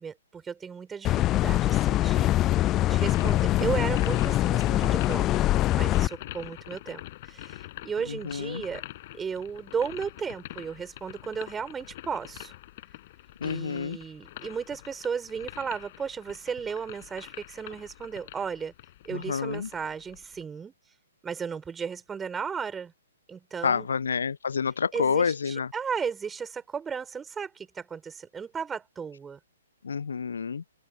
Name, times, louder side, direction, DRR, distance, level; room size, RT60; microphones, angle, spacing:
voice 1, 0.0-2.3 2.9-5.3 5.7-8.8 9.1-12.5 13.4-18.7 19.0-20.7 21.2-22.9 23.3-23.9 24.9-29.4, right 6 dB, 10° right, 6.6 m, -35 dB
sound 1, 1.0-6.1, left 14 dB, 20° left, 0.6 m, -23 dB
sound 2, 2.9-20.4, left 16 dB, 40° left, 5.9 m, -45 dB
voice 2, 8.3-8.6 13.4-14.0 19.1-19.7 23.6-25.7 29.8-30.6, left 6 dB, 60° left, 0.7 m, -28 dB
open air
figure-of-eight pair, 120°, 0 cm